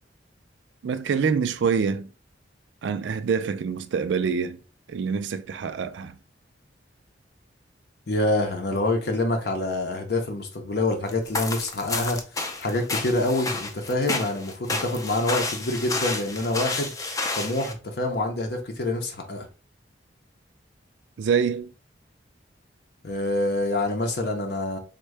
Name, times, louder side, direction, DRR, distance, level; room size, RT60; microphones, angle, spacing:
voice 1, 0.8-2.1 2.8-4.6 4.9-6.2 21.2-21.7, right 6 dB, 90° right, 0.4 m, -25 dB
voice 2, 8.1-16.9 17.3-19.5 23.0-24.8, left 2 dB, 65° left, 0.6 m, -26 dB
sound 1, 11.1-17.7, left 3 dB, 20° left, 0.4 m, -30 dB
3.5 x 2.2 x 3.2 m
head